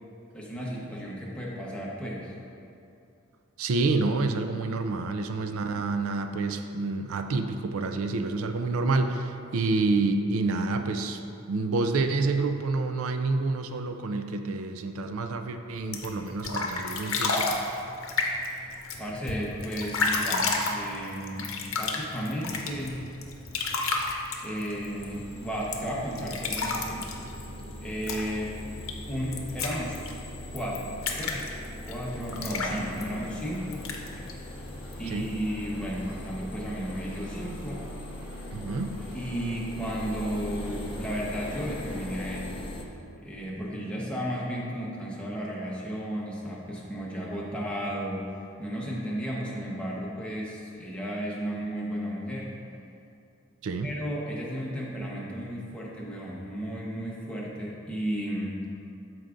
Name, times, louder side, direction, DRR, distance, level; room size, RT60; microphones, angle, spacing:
voice 1, 0.3-2.3 19.0-23.1 24.4-27.1 27.8-28.6 29.1-30.2 30.5-31.4 31.9-33.9 35.0-37.9 39.1-42.6 43.2-52.5 53.8-58.6, equal, 5° left, -5 dB, 1.0 m, -34 dB
voice 2, 3.6-11.2 11.5-17.5 35.1-35.3 38.5-38.9 53.6-53.9, right 3 dB, 80° right, 7 dB, 0.4 m, -28 dB
sound 1, 15.8-35.4, left 3 dB, 70° left, 0.8 m, -33 dB
sound 2, 24.7-42.8, left 1 dB, 25° left, 0.6 m, -40 dB
sound 3, 32.0-42.1, equal, 10° right, 1.3 m, -50 dB
13.0 x 4.7 x 2.5 m, 2.6 s
head